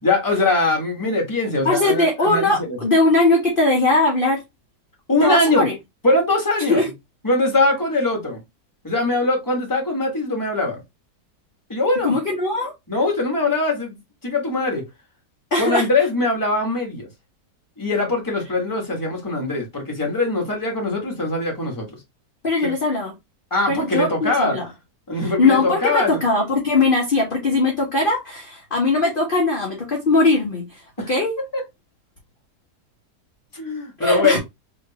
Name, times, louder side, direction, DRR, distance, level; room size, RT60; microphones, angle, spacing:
voice 1, 0.0-2.8 5.1-5.6 6.0-6.8 7.2-8.4 8.8-10.8 11.7-12.1 12.9-14.8 15.6-17.1 17.8-21.9 22.6-22.7 23.5-24.6 25.1-26.2 31.0-31.1 31.5-31.6 33.5-34.4, left 2 dB, 15° left, 1.3 m, -22 dB
voice 2, 1.6-4.4 5.2-5.7 6.7-6.9 12.0-12.7 15.5-15.9 22.4-23.1 23.7-24.7 25.2-30.8 31.1-31.3 34.0-34.4, left 2 dB, 35° left, 1.1 m, -20 dB
3.5 x 3.1 x 2.8 m
omnidirectional pair, 1.8 m